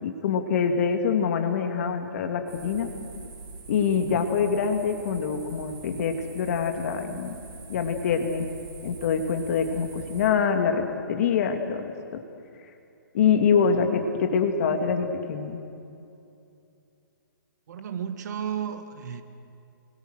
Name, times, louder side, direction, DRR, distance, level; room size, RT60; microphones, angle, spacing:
voice 1, 0.0-2.9 3.7-7.4 7.7-8.5 8.8-10.8 11.1-12.2 13.1-15.6, left 6 dB, 45° left, 5 dB, 2.6 m, -25 dB
sound 1, 2.5-10.3, right 4 dB, 75° right, 8.0 m, -44 dB
voice 2, 17.7-19.2, right 8 dB, 50° right, 8 dB, 1.8 m, -33 dB
28.0 x 22.5 x 6.5 m, 2.6 s
hypercardioid pair, 165°, 12 cm